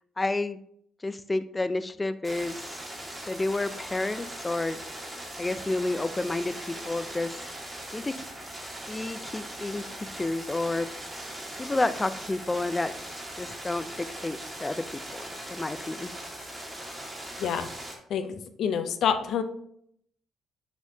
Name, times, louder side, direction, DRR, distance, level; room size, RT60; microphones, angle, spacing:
voice 1, 0.2-0.6 1.0-2.6 3.3-4.8 5.4-7.4 7.9-8.1 8.9-9.8 10.1-10.9 11.6-12.9 13.4-14.8 15.1-15.2 15.5-16.1, left 2 dB, 15° left, 12 dB, 0.4 m, -30 dB
sound 1, 2.2-17.9, right 1 dB, 15° right, 1.7 m, -40 dB
voice 2, 17.4-17.7 18.1-19.4, left 7 dB, 70° left, 9 dB, 0.6 m, -27 dB
6.1 x 5.5 x 2.8 m, 0.67 s
cardioid pair, 115°, 0 cm